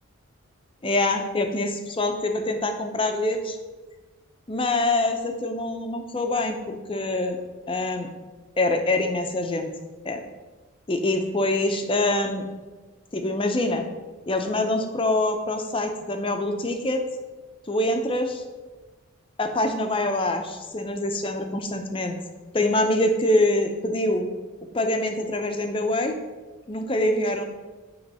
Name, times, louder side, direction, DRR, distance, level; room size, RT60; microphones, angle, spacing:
voice 1, 0.8-3.6 4.5-7.4 7.7-8.1 8.6-9.7 10.0-10.2 10.9-12.5 13.1-13.8 14.3-17.0 17.7-18.4 19.4-22.2 22.5-24.3 24.7-26.1 26.7-27.4, left 1 dB, 25° left, 5 dB, 0.6 m, -25 dB
8.8 x 3.2 x 5.4 m, 1.3 s
head